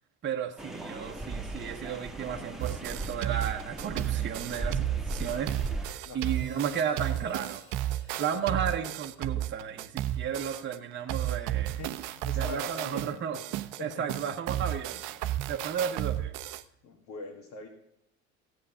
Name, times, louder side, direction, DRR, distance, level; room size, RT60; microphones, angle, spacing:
voice 1, 0.2-7.6 8.2-11.8 12.4-13.4 13.8-15.2 15.5-16.3, right 8 dB, 30° right, 3 dB, 1.0 m, -34 dB
sound 1, 0.6-5.8, right 2 dB, ahead, 1.4 m, -38 dB
sound 2, 2.6-10.8 11.1-16.6, right 13 dB, 55° right, 0.7 m, -33 dB
voice 2, 6.0-6.4 8.3-8.6 11.6-13.4 13.8-14.0 15.9-16.0 16.8-17.7, left 3 dB, 65° left, 0 dB, 1.9 m, -43 dB
Hi-hat, 6.3-10.5, left 2 dB, 85° left, 3.0 m, -58 dB
15.5 x 7.9 x 5.6 m, 0.84 s
hypercardioid pair, 70°, 38 cm